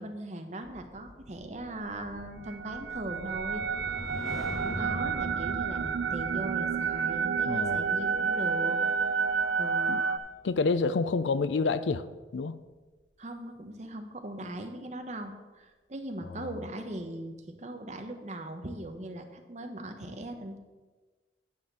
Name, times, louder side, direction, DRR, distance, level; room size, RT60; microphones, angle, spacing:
voice 1, 0.0-3.6 4.6-9.1 9.6-10.0 13.2-20.6, right 1 dB, 40° right, 6 dB, 0.9 m, -39 dB
sound 1, 0.6-11.1 11.4-11.7, equal, ahead, 0.6 m, -44 dB
sound 2, 2.5-10.2, right 6 dB, 75° right, 0.5 m, -30 dB
voice 2, 7.5-7.8 9.9-10.0 10.4-12.0 12.3-12.6 16.3-16.5, left 4 dB, 75° left, 14 dB, 0.4 m, -28 dB
9.7 x 4.2 x 7.3 m, 1.3 s
head